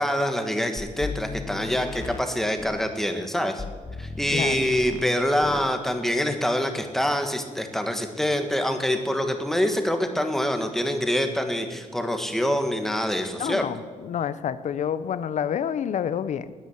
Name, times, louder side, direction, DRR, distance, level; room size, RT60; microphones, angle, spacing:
voice 1, 0.0-3.6 4.0-13.6, equal, 5° left, 6 dB, 1.5 m, -25 dB
sound 1, 0.8-2.9 3.6-5.1 5.4-5.7, left 4 dB, 20° left, 0.8 m, -36 dB
voice 2, 13.4-16.5, left 8 dB, 60° left, 15 dB, 0.8 m, -28 dB
19.5 x 9.9 x 7.2 m, 1.5 s
wide cardioid pair, 165°, 14 cm